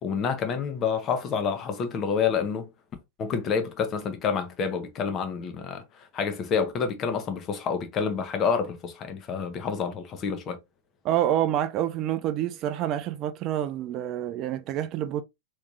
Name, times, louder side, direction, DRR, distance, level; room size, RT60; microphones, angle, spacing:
voice 1, 0.0-2.7 3.2-10.6, left 6 dB, 35° left, 0.9 m, -28 dB
voice 2, 11.0-15.2, right 11 dB, 40° right, 0.4 m, -27 dB
3.5 x 3.1 x 2.5 m
hypercardioid pair, 105°, 0 cm